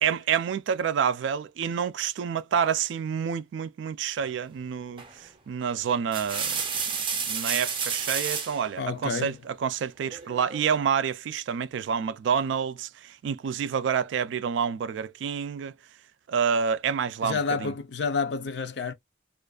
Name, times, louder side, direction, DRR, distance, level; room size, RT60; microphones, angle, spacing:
voice 1, 0.0-6.6 7.3-15.7 16.3-17.7, right 7 dB, 80° right, 0.3 m, -28 dB
sound 1, 5.0-5.3 5.9-8.6 10.1-10.7, right 6 dB, 25° right, 0.6 m, -31 dB
voice 2, 8.8-9.4 17.2-18.9, left 5 dB, 65° left, 0.4 m, -29 dB
2.4 x 2.3 x 2.3 m
head